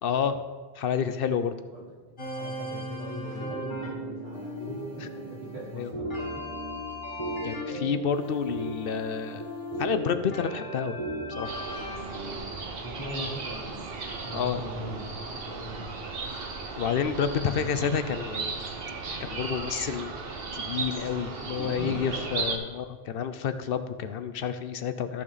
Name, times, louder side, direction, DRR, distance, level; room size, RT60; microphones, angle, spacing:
voice 1, 0.0-0.4 0.8-1.5 5.0-5.1 5.8-5.9 7.4-9.4 9.8-11.0 11.4-11.6 14.3-14.6 16.8-18.6 19.2-20.1 20.5-25.2, left 7 dB, 65° left, 11 dB, 0.8 m, -29 dB
sound 1, 2.2-12.4, right 1 dB, 50° left, 2.0 m, -39 dB
voice 2, 2.2-6.0 12.6-13.8 14.2-15.9 17.3-17.9 21.4-22.7, equal, 85° right, -6 dB, 3.2 m, -40 dB
sound 2, 3.4-11.6, equal, 25° left, 2.0 m, -38 dB
sound 3, 11.4-22.6, right 4 dB, 65° right, 1.2 m, -36 dB
13.5 x 6.0 x 4.0 m, 1.4 s
omnidirectional pair, 1.1 m